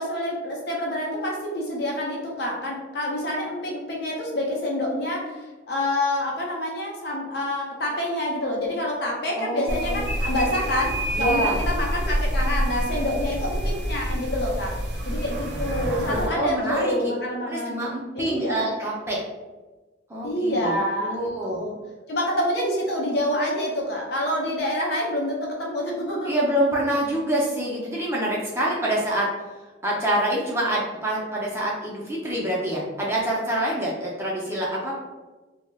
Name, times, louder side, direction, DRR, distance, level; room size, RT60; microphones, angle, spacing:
voice 1, 0.0-14.7 15.1-17.8 18.1-18.7 20.2-21.8 22.1-26.5, left 1 dB, 55° left, -2 dB, 0.6 m, -27 dB
voice 2, 9.4-10.0 11.1-11.6 15.9-17.1 17.4-19.2 20.1-20.7 21.0-21.6 26.3-29.3 29.8-34.9, right 1 dB, 15° right, -5 dB, 0.5 m, -26 dB
sound 1, 9.7-16.3, equal, 60° right, 0.6 m, -27 dB
2.3 x 2.0 x 3.4 m, 1.2 s
head